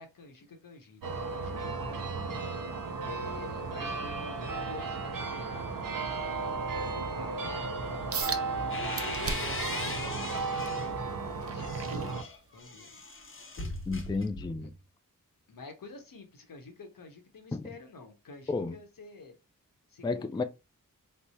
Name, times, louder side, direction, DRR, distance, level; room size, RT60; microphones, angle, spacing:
voice 1, 0.0-2.3 3.0-12.2 12.5-13.0 14.6-14.7 15.5-19.3 19.9-20.3, left 3 dB, 80° left, 1.0 m, -48 dB
sound 1, 1.0-12.2, right 4 dB, 80° right, 0.9 m, -34 dB
sound 2, 8.1-8.5 9.0-9.6 10.1-12.7 13.2-13.4 14.0-14.1, right 5 dB, 45° right, 0.5 m, -38 dB
sound 3, 8.3-11.0 11.4-14.8, left 3 dB, 40° left, 0.8 m, -40 dB
voice 2, 13.9-14.7 17.5-17.7 18.5-18.8 20.0-20.4, left 3 dB, 15° left, 0.3 m, -32 dB
3.3 x 2.0 x 4.2 m
wide cardioid pair, 85°, 33 cm